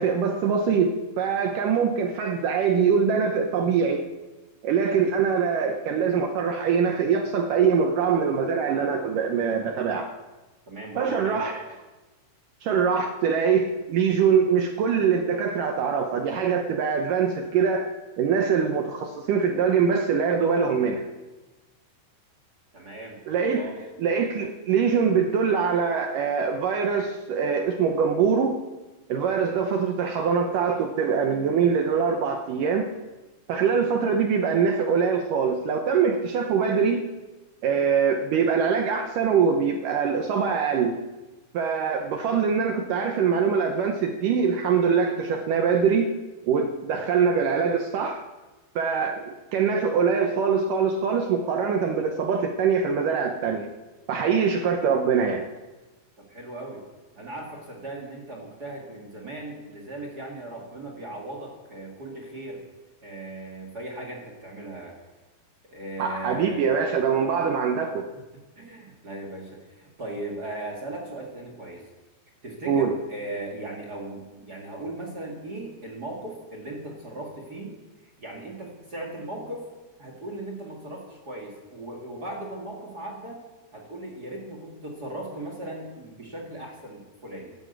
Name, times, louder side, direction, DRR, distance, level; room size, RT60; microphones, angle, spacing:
voice 1, 0.0-4.1 4.6-10.1 11.0-11.6 12.6-17.9 18.2-21.1 23.3-23.7 24.0-28.6 29.1-32.9 33.5-37.0 37.6-41.0 41.5-46.1 46.5-48.2 48.8-53.7 54.1-55.5 66.0-68.0 72.7-73.0, right 6 dB, 75° right, 4 dB, 2.0 m, -23 dB
voice 2, 10.7-11.4 22.7-23.8 56.3-56.8 57.1-62.6 63.0-64.9 65.7-66.7 68.5-71.8 72.4-77.8 78.0-79.7 80.0-83.4 83.7-87.5, right 1 dB, 35° right, 1 dB, 1.8 m, -38 dB
12.5 x 12.5 x 8.1 m, 1.2 s
omnidirectional pair, 4.8 m